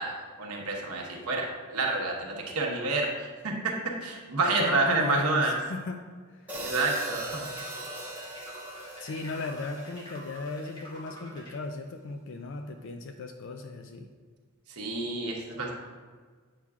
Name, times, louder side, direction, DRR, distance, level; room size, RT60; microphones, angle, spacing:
voice 1, 0.0-3.5 4.0-5.5 6.5-7.5 14.7-15.7, right 3 dB, 85° right, 0 dB, 1.1 m, -29 dB
voice 2, 4.6-6.0 6.3-6.5 9.0-14.1, left 3 dB, 60° left, 6 dB, 0.4 m, -36 dB
Hi-hat, 6.5-10.7, right 1 dB, 10° right, 1.0 m, -40 dB
sound 1, 7.0-11.6, equal, 20° left, 1.3 m, -47 dB
8.3 x 5.9 x 2.4 m, 1.6 s
head